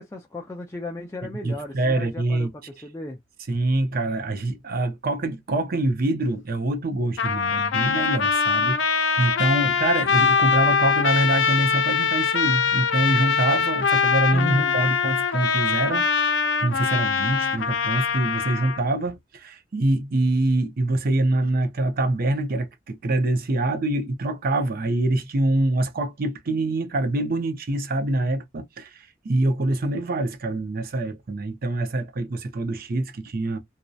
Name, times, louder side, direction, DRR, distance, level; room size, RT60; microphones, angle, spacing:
voice 1, 0.0-3.2 14.3-14.9, left 1 dB, 15° left, 0.4 m, -35 dB
voice 2, 1.2-2.5 3.5-33.6, right 2 dB, 50° right, 0.5 m, -25 dB
Trumpet, 7.2-18.8, left 5 dB, 80° left, 0.5 m, -22 dB
2.6 x 2.0 x 2.3 m
head